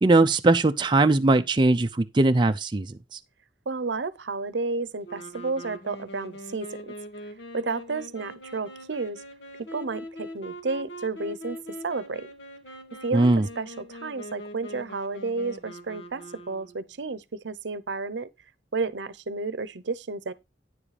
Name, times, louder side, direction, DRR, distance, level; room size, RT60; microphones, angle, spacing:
voice 1, 0.0-2.9 13.1-13.4, right 2 dB, 25° right, 0.5 m, -20 dB
voice 2, 3.7-6.9 7.5-9.2 9.7-11.6 11.8-12.3 13.0-18.3 18.7-20.3, right 3 dB, 80° right, 0.7 m, -31 dB
sound 1, 5.0-16.9, equal, 85° left, 1.8 m, -42 dB
9.8 x 7.3 x 3.2 m
head